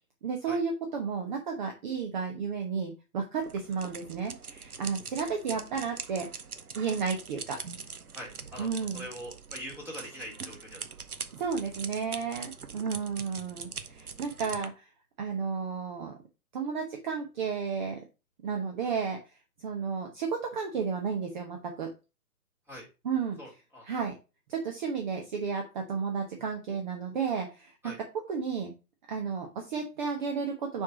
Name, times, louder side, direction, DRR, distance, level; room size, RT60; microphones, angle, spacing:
voice 1, 0.2-6.3 6.7-7.6 8.6-9.0 11.3-14.9 15.2-16.1 16.5-18.0 18.4-19.2 19.6-21.9 23.0-23.4 23.8-24.1 24.5-27.9 28.3-28.7 29.1-30.8, right 5 dB, 30° right, 3 dB, 1.1 m, -32 dB
sound 1, 3.4-14.7, right 5 dB, 75° right, 1.0 m, -43 dB
voice 2, 8.1-10.9 22.7-22.9 23.4-23.8 27.8-28.0, equal, 5° right, -4 dB, 2.8 m, -43 dB
5.9 x 4.7 x 4.8 m, 0.29 s
figure-of-eight pair, 125°, 45 cm